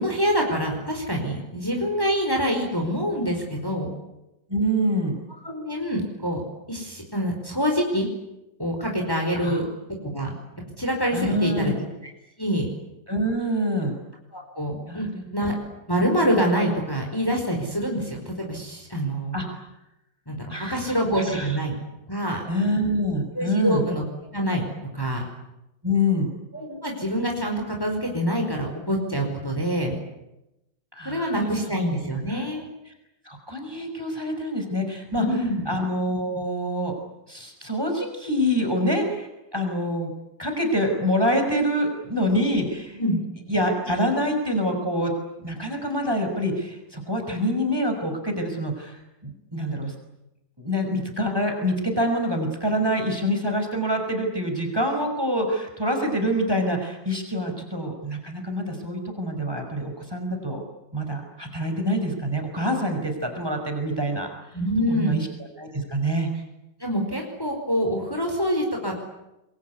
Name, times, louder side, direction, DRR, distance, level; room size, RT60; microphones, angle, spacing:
voice 1, 0.0-3.9 5.4-6.4 6.7-8.1 8.6-9.7 10.0-10.3 10.8-11.7 12.4-12.7 14.3-15.1 15.3-15.6 15.9-19.4 20.3-21.7 22.1-22.4 23.3-24.0 24.3-24.6 24.9-25.2 26.5-29.9 31.0-32.7 35.1-35.7 43.0-43.2 64.5-65.2 66.8-69.0, equal, 10° left, 1 dB, 4.9 m, -25 dB
voice 2, 4.5-5.2 9.4-9.6 11.1-11.8 13.1-14.0 14.9-15.3 19.3-19.6 20.5-20.8 21.3-21.6 22.5-23.8 25.8-26.3 30.9-31.4 32.3-32.4 33.3-35.3 35.7-36.9 37.3-40.1 40.4-43.0 43.5-45.1 45.4-49.9 50.6-60.6 60.9-64.3 64.9-65.3 65.6-66.3, equal, 10° right, 4 dB, 5.6 m, -26 dB
27.0 x 22.5 x 9.7 m, 0.92 s
omnidirectional pair, 1.9 m